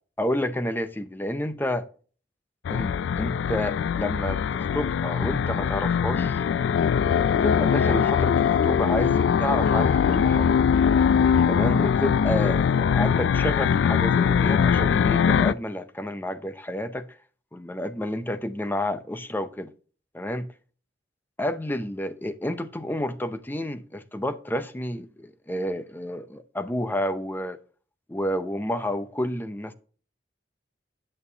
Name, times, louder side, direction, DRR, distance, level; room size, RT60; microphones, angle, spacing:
voice 1, 0.2-1.9 2.7-6.4 7.4-10.5 11.5-17.1 17.5-19.7 20.1-20.5 21.4-27.6 28.1-29.7, left 1 dB, 10° left, 0.6 m, -30 dB
sound 1, 2.6-15.5, left 7 dB, 75° left, 0.3 m, -22 dB
9.1 x 8.6 x 2.8 m
head